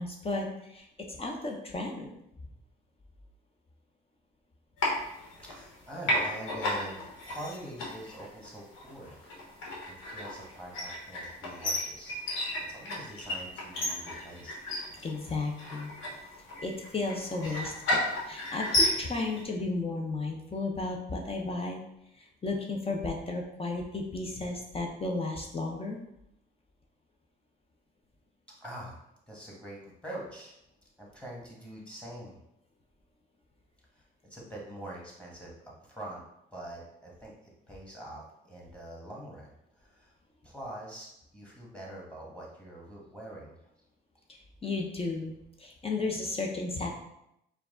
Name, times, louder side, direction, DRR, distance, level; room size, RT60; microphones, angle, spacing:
voice 1, 0.0-2.1 15.0-15.9 16.6-18.0 18.2-21.8 22.2-26.0 44.3-46.9, left 3 dB, 30° left, 1 dB, 0.6 m, -34 dB
sound 1, 4.8-5.8 6.0-19.4, left 1 dB, 85° left, 1.2 m, -33 dB
voice 2, 5.4-9.2 9.5-12.1 12.7-14.5 28.5-29.0 29.3-30.5 31.0-32.4 33.9-34.0 34.3-35.5 35.8-36.2 36.5-40.1 40.4-43.5, right 1 dB, 5° left, -4 dB, 1.5 m, -44 dB
4.6 x 2.3 x 3.7 m, 0.81 s
cardioid pair, 90°, 20 cm